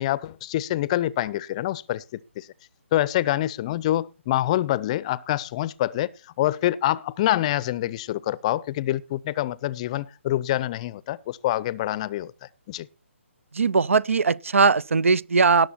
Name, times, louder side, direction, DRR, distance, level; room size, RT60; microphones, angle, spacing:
voice 1, 0.0-2.5 2.9-6.1 6.4-12.3 12.7-12.9, left 14 dB, 30° left, 0.5 m, -26 dB
voice 2, 13.5-15.7, right 4 dB, 75° right, 0.5 m, -20 dB
18.0 x 6.6 x 4.4 m
figure-of-eight pair, 145°, 7 cm